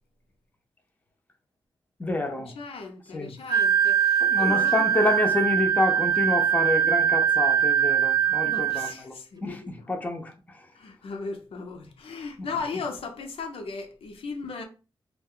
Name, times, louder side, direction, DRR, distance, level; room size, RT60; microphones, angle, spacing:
voice 1, 2.0-2.5 3.1-3.3 4.2-10.3 12.4-12.5, left 2 dB, 15° left, 0.5 m, -28 dB
voice 2, 2.6-4.9 8.4-9.9 10.8-14.6, left 4 dB, 85° left, 0.6 m, -37 dB
Wind instrument woodwind instrument, 3.5-9.0, right 8 dB, 45° right, 0.4 m, -22 dB
2.4 x 2.2 x 3.6 m
wide cardioid pair, 120°, 10 cm